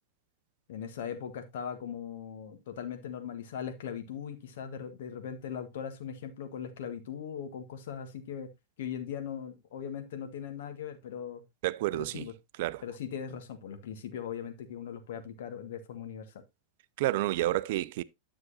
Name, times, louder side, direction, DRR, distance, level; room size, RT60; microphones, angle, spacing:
voice 1, 0.7-8.5 8.8-11.4 11.9-12.3 12.8-16.4, left 8 dB, 55° left, 1.4 m, -39 dB
voice 2, 11.6-12.3 12.6-12.8 17.0-18.0, right 16 dB, 50° right, 0.4 m, -29 dB
9.7 x 7.1 x 2.8 m
figure-of-eight pair, 90°, 0 cm